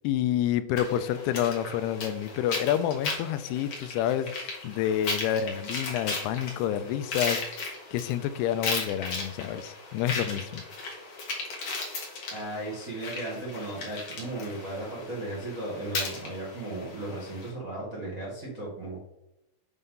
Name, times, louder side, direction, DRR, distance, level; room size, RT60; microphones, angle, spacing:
voice 1, 0.0-10.6, left 10 dB, 85° left, 12 dB, 2.6 m, -29 dB
sound 1, 0.8-17.5, left 3 dB, 55° left, 1.5 m, -36 dB
voice 2, 12.3-19.0, right 2 dB, 65° right, -5 dB, 0.8 m, -36 dB
8.1 x 5.3 x 3.7 m, 0.89 s
omnidirectional pair, 4.6 m